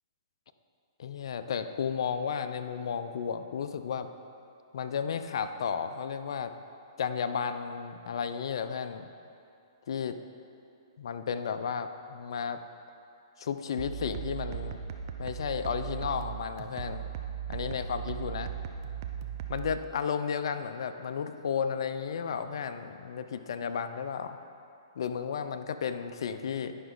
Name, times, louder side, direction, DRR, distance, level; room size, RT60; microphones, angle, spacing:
voice 1, 1.0-4.1 4.7-6.5 7.0-9.1 9.9-10.2 11.0-12.6 13.4-14.8 15.2-17.0 17.5-18.5 19.5-24.4 25.0-26.8, left 7 dB, 65° left, 9 dB, 0.5 m, -33 dB
sound 1, 13.8-19.8, right 8 dB, 45° right, 0.6 m, -38 dB
10.0 x 5.8 x 3.8 m, 2.6 s
hypercardioid pair, 145°, 3 cm